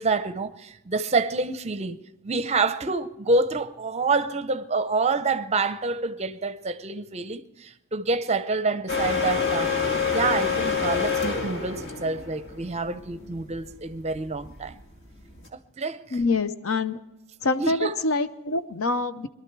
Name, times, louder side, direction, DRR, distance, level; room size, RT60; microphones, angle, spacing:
voice 1, 0.0-2.0 2.2-9.8 10.1-14.8 15.8-16.2 17.6-18.0, right 3 dB, 30° right, 0.6 m, -27 dB
sound 1, 8.9-15.5, left 5 dB, 50° left, 2.3 m, -27 dB
voice 2, 16.1-17.0 17.4-19.3, left 3 dB, 70° left, 0.7 m, -25 dB
22.0 x 12.5 x 4.6 m
head